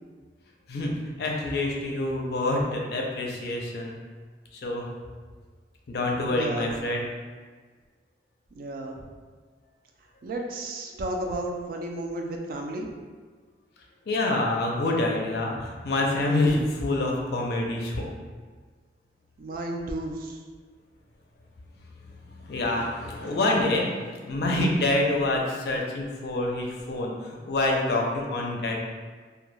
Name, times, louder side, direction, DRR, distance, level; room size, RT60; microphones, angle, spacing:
voice 1, 0.7-4.0 4.5-4.8 5.9-7.0 14.1-18.1 22.4-28.7, left 2 dB, 60° left, 0 dB, 0.4 m, -26 dB
voice 2, 6.3-6.7 8.6-9.1 10.2-12.9 19.4-20.4, right 1 dB, 50° right, 1 dB, 0.3 m, -33 dB
2.2 x 2.2 x 3.1 m, 1.5 s
head